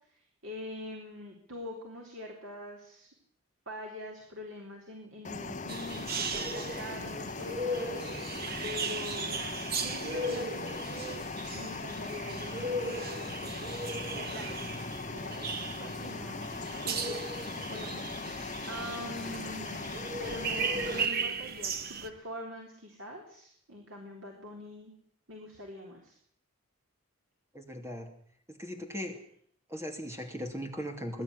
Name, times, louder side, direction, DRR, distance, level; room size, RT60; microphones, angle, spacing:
voice 1, 0.1-3.1 3.7-8.3 8.6-11.3 11.5-13.5 13.8-14.6 14.9-16.6 16.8-19.8 20.2-24.9 25.3-26.2, left 1 dB, 65° right, 0 dB, 3.9 m, -44 dB
sound 1, 5.2-21.1, left 3 dB, 35° left, 1.0 m, -39 dB
sound 2, 5.7-22.1, right 3 dB, 45° right, 1.4 m, -37 dB
voice 2, 27.5-28.1 28.5-29.2 29.7-31.2, equal, 10° right, 4 dB, 2.9 m, -38 dB
22.5 x 12.0 x 9.8 m, 0.64 s
head